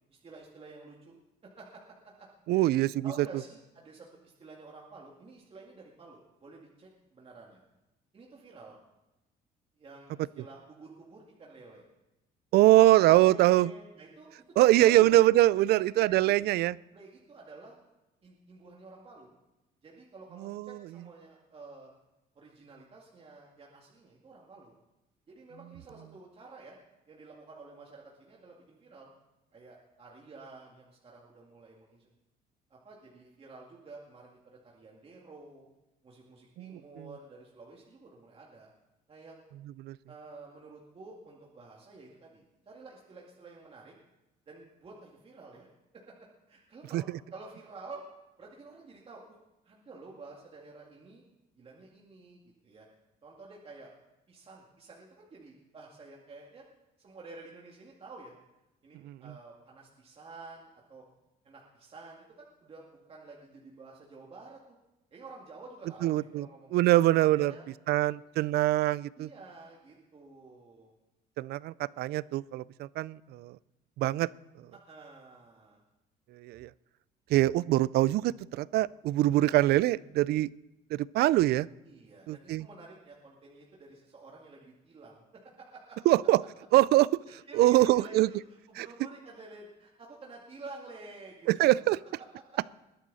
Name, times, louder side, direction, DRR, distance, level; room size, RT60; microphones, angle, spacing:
voice 1, 0.1-1.2 1.4-2.7 3.0-7.6 8.1-8.8 9.8-11.9 12.6-15.2 15.6-16.6 16.9-17.8 18.2-19.3 19.8-21.9 22.4-24.7 25.3-26.8 27.1-29.1 29.5-32.1 32.7-35.7 36.0-38.7 39.1-39.4 40.1-43.9 44.5-45.7 45.9-46.1 46.5-48.0 48.4-49.4 49.6-51.2 51.6-52.9 53.2-53.9 54.3-56.6 57.0-58.4 58.8-61.0 61.4-64.8 65.1-67.1 67.4-67.7 69.2-70.9 74.9-75.8 81.8-86.0 87.3-91.9 92.5-92.6, right 3 dB, 35° right, -2 dB, 2.3 m, -50 dB
voice 2, 2.5-3.1 12.5-13.7 14.6-16.8 20.4-20.7 36.6-37.1 39.8-40.0 46.9-47.0 59.0-59.2 66.0-66.5 66.7-67.5 67.9-69.3 71.4-73.5 74.0-74.3 76.4-76.7 77.3-80.5 80.9-81.7 82.3-82.7 86.1-86.4 86.7-87.1 87.5-88.3 88.8-88.9 91.5-92.0, right 16 dB, 70° right, 21 dB, 0.4 m, -23 dB
20.5 x 11.0 x 4.1 m, 0.98 s
cardioid pair, 110°, 17 cm